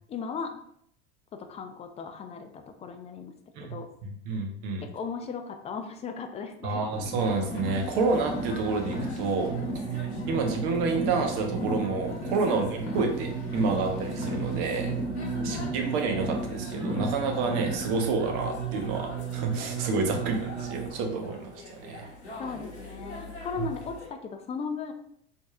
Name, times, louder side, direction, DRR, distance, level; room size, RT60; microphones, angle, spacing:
voice 1, 0.1-0.6 1.3-3.3 3.6-3.9 4.8-6.8 12.4-12.6 15.1-15.7 22.4-24.9, left 5 dB, 20° left, 6 dB, 0.4 m, -37 dB
voice 2, 3.6-4.8 6.6-9.5 9.9-14.9 15.4-22.1 23.6-23.7, right 4 dB, 50° right, 3 dB, 0.9 m, -29 dB
Car, 6.9-18.0, equal, 40° left, 1.1 m, -36 dB
sound 1, 7.2-24.1, left 2 dB, 85° left, 1.0 m, -45 dB
sound 2, 9.4-20.9, right 7 dB, 25° right, 1.1 m, -36 dB
4.1 x 3.6 x 2.2 m, 0.69 s
figure-of-eight pair, 80°, 33 cm